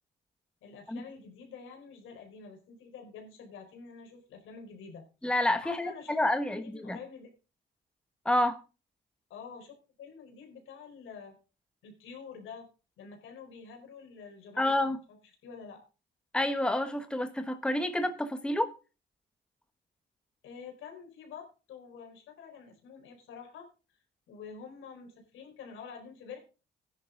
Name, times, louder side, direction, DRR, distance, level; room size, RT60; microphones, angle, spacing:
voice 1, 0.6-5.1 5.6-7.3 9.3-11.4 11.8-12.7 13.0-14.9 15.4-15.8 20.4-23.7 24.3-26.4, left 6 dB, 85° left, 3 dB, 4.4 m, -48 dB
voice 2, 5.2-7.0 8.2-8.6 14.6-15.0 16.3-18.7, left 1 dB, 5° left, 9 dB, 1.2 m, -29 dB
14.5 x 10.5 x 3.8 m, 0.33 s
cardioid pair, 90°, 20 cm